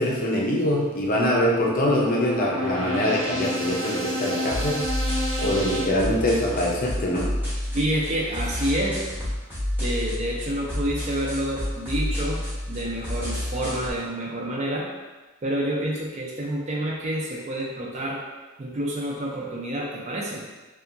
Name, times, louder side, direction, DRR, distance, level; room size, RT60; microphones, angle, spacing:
voice 1, 0.0-4.8 5.4-7.3, left 1 dB, 40° left, -2 dB, 0.5 m, -23 dB
sound 1, 1.0-5.8, equal, 70° right, 0.7 m, -30 dB
sound 2, 4.5-13.9, left 1 dB, 10° right, 0.8 m, -30 dB
voice 2, 7.7-9.0 9.8-14.9 15.4-18.2 18.6-20.5, right 1 dB, 35° right, -3 dB, 0.4 m, -28 dB
2.7 x 2.3 x 2.5 m, 1.2 s
head